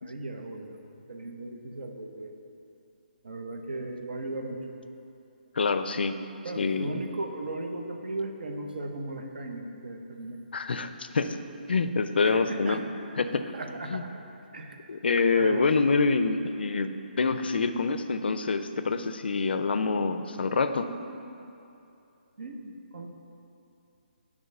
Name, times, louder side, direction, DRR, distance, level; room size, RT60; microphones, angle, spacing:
voice 1, 0.0-0.8 1.1-2.4 3.2-4.7 6.4-10.4 12.2-12.8 13.5-14.1 14.5-14.8 15.3-15.7 22.4-23.1, right 2 dB, 65° right, 4 dB, 0.8 m, -36 dB
voice 2, 5.6-6.1 6.6-7.0 10.5-11.4 11.7-12.8 13.2-13.5 13.9-14.0 14.9-16.9 17.2-20.9, left 4 dB, 75° left, 10 dB, 0.4 m, -26 dB
8.8 x 3.6 x 5.3 m, 2.7 s
hypercardioid pair, 160°, 5 cm